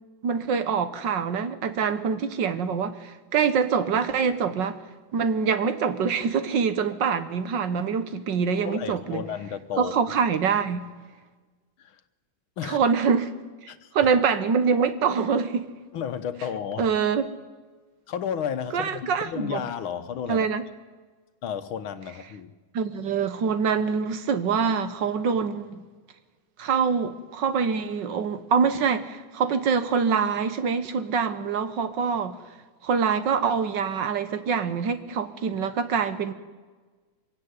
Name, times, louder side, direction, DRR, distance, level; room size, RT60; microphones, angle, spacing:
voice 1, 0.2-4.8 5.1-9.2 9.8-10.9 12.6-13.3 13.6-15.7 16.8-17.3 18.7-19.6 20.3-20.6 22.7-25.8 26.6-32.4 32.8-36.3, right 6 dB, 65° right, 1.9 m, -25 dB
voice 2, 8.6-9.9 11.8-12.0 12.6-12.8 13.7-13.9 15.9-16.9 18.1-20.5 21.4-22.5, left 8 dB, 85° left, 1.9 m, -32 dB
24.0 x 16.5 x 9.6 m
omnidirectional pair, 2.2 m